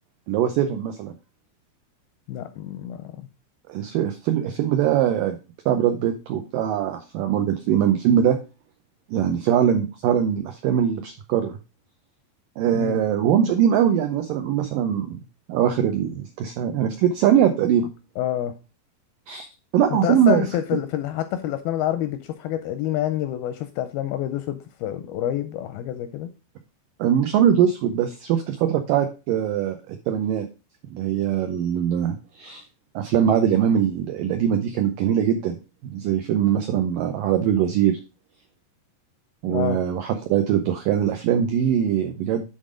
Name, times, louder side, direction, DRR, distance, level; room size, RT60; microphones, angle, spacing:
voice 1, 0.3-1.1 3.7-5.4 5.7-8.4 9.1-11.6 12.6-15.2 15.5-17.9 19.3-19.5 19.7-20.5 27.0-30.5 30.9-32.6 33.0-35.6 35.8-38.0 39.4-42.4, right 9 dB, 85° right, 1.9 m, -22 dB
voice 2, 2.3-3.2 12.7-13.0 18.2-18.5 20.0-26.3 39.5-39.8, left 12 dB, 85° left, 2.2 m, -27 dB
10.0 x 3.9 x 5.0 m
omnidirectional pair, 4.8 m